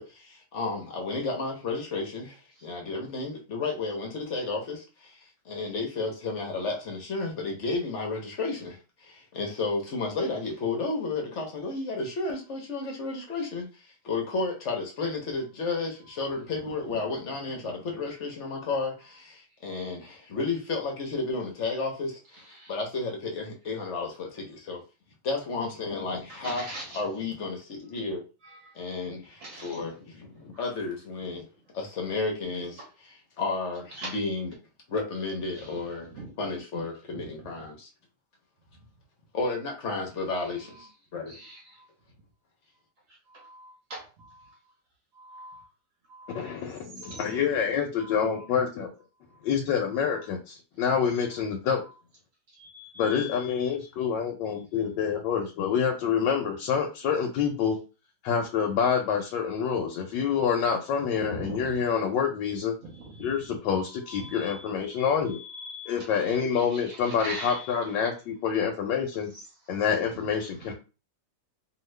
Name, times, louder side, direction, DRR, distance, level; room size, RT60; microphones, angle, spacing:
voice 1, 0.0-24.8 25.2-28.2 28.7-31.5 31.7-32.8 33.4-34.5 34.9-36.1 36.4-37.9 39.3-41.4, left 3 dB, 55° left, 0.8 m, -32 dB
voice 2, 16.1-18.0 19.5-19.8 22.3-22.8 26.3-27.1 28.4-28.9 29.2-29.8 30.5-30.7 32.8-32.9 33.9-34.2 35.5-36.3 37.1-37.7 38.8-38.9 40.3-40.9 41.3-41.9 43.1-44.7 45.1-45.7 46.1-47.4 48.0-48.5 49.3-49.4 49.9-50.3 51.8-51.9 52.5-53.9 54.7-54.8 61.2-61.9 62.8-68.1 69.3-70.7, right 1 dB, 55° right, 1.0 m, -44 dB
voice 3, 46.3-48.9 49.4-51.8 53.0-57.8 58.2-62.7 63.2-65.4 65.9-69.3 69.7-70.7, left 7 dB, 85° left, 1.3 m, -27 dB
2.8 x 2.7 x 3.1 m
omnidirectional pair, 1.9 m